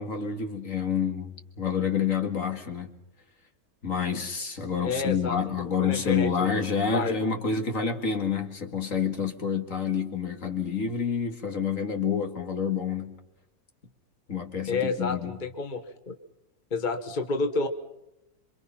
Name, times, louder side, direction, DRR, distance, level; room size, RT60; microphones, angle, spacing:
voice 1, 0.0-2.9 3.8-13.2 14.3-15.4, left 6 dB, 60° left, 2.5 m, -28 dB
voice 2, 4.8-6.6 6.9-7.3 14.7-16.1 16.7-17.7, left 3 dB, 30° left, 1.4 m, -30 dB
27.5 x 25.0 x 5.8 m
omnidirectional pair, 1.6 m